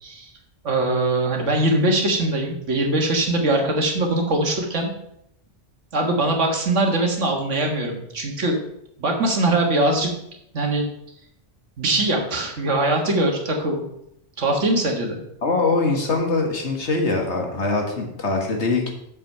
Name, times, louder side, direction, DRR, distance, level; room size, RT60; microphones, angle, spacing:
voice 1, 0.6-4.9 5.9-8.6 9.0-10.1 10.5-10.9 11.8-13.8 14.4-15.2, right 2 dB, 80° right, 2 dB, 1.9 m, -22 dB
voice 2, 15.4-18.9, left 3 dB, 70° left, 2 dB, 1.9 m, -22 dB
6.9 x 5.8 x 6.6 m, 0.76 s
omnidirectional pair, 1.2 m